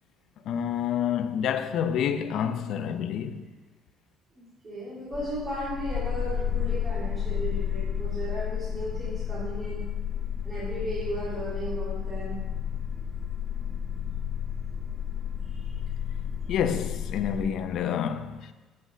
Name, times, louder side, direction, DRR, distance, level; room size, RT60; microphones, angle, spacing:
voice 1, 0.4-3.5 16.5-18.5, left 8 dB, 65° left, 0.5 m, -28 dB
voice 2, 4.4-9.8 10.4-12.4 15.4-15.7, right 1 dB, 30° right, 2.6 m, -35 dB
sound 1, 5.1-17.4, left 8 dB, ahead, 1.4 m, -32 dB
7.7 x 6.2 x 5.1 m
cardioid pair, 100°, 0 cm